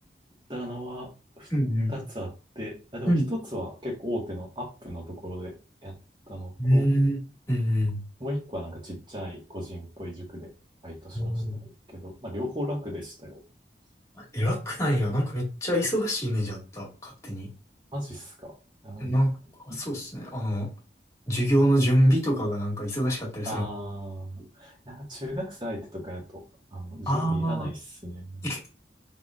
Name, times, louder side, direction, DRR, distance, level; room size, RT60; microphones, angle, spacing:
voice 1, 0.5-1.5 1.9-2.3 2.5-5.5 5.8-5.9 6.3-6.8 8.2-10.5 10.8-13.4 17.9-18.5 18.8-19.1 19.7-19.8 23.4-26.4 26.7-28.5, equal, 25° right, -1 dB, 1.6 m, -36 dB
voice 2, 1.5-2.0 3.1-3.3 6.6-7.2 7.5-8.0 11.1-11.6 14.2-17.5 19.0-19.3 19.7-20.7 21.3-23.7 27.1-27.7 28.4-28.7, equal, 15° left, -3 dB, 2.0 m, -25 dB
3.8 x 3.6 x 2.4 m, 0.33 s
head